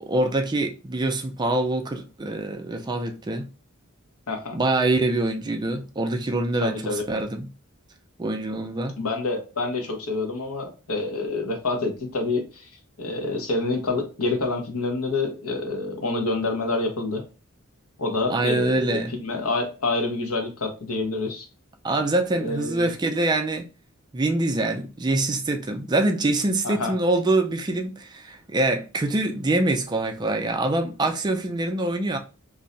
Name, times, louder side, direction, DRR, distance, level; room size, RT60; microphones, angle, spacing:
voice 1, 0.0-3.4 4.5-7.5 8.2-8.9 18.3-19.2 21.8-23.7 24.1-32.2, right 2 dB, 20° right, 0.4 m, -25 dB
voice 2, 6.6-7.0 9.0-12.6 13.0-17.2 18.0-21.5 22.4-22.9 26.6-26.9, left 3 dB, 80° left, 0.9 m, -27 dB
2.6 x 2.1 x 3.8 m
head